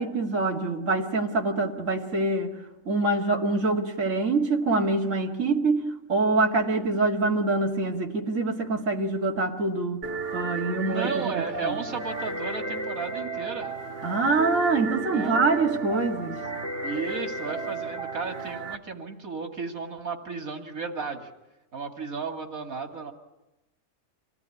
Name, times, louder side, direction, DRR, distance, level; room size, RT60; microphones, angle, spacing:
voice 1, 0.0-2.5 2.9-5.8 6.1-10.0 10.3-11.2 11.6-11.8 14.0-16.4, right 3 dB, 65° right, -1 dB, 2.5 m, -25 dB
sound 1, 10.0-18.8, right 3 dB, 45° right, 1.8 m, -33 dB
voice 2, 10.8-13.8 15.1-15.4 16.8-21.3 21.7-23.1, right 4 dB, 85° right, 4 dB, 2.9 m, -34 dB
27.0 x 18.5 x 10.0 m, 0.95 s
omnidirectional pair, 1.4 m